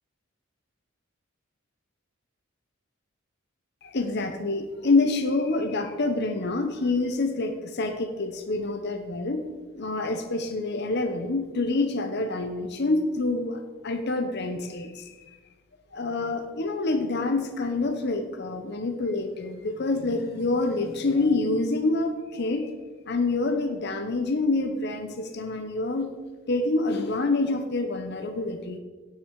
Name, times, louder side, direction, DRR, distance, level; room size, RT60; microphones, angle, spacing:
voice 1, 3.8-9.4 9.7-15.4 15.9-22.7 23.1-26.1 26.5-28.8, left 2 dB, 55° left, 6 dB, 0.9 m, -27 dB
16.5 x 6.8 x 4.7 m, 1.4 s
head